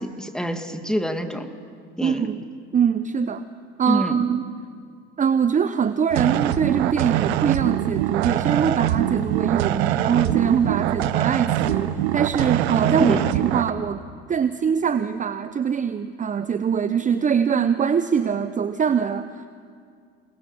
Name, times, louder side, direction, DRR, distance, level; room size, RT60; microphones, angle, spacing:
voice 1, 0.0-1.5 2.0-2.2 3.9-4.2 13.0-13.2, equal, ahead, 6 dB, 2.2 m, -25 dB
voice 2, 2.0-2.5 2.7-3.5 3.8-4.4 5.2-14.0 14.3-19.5, right 7 dB, 25° right, 11 dB, 0.8 m, -23 dB
sound 1, 6.1-13.7, right 13 dB, 75° right, 1.1 m, -23 dB
28.5 x 20.0 x 7.3 m, 2.1 s
hypercardioid pair, 80°, 32 cm